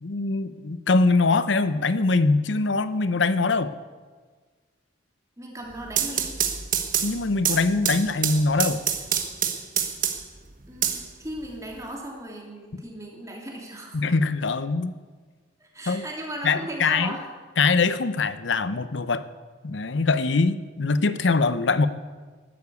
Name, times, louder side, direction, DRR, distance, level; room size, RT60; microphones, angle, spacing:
voice 1, 0.0-3.7 7.0-8.8 13.9-14.9 15.9-16.0 16.4-17.1 17.6-19.2 19.6-21.9, left 3 dB, 75° left, 14 dB, 0.7 m, -23 dB
voice 2, 5.4-6.4 10.7-14.0 15.6-17.3, right 1 dB, 15° right, -1 dB, 2.9 m, -36 dB
sound 1, 5.7-10.4 10.8-11.8, right 9 dB, 45° right, 1.3 m, -26 dB
12.0 x 12.0 x 8.2 m, 1.5 s
head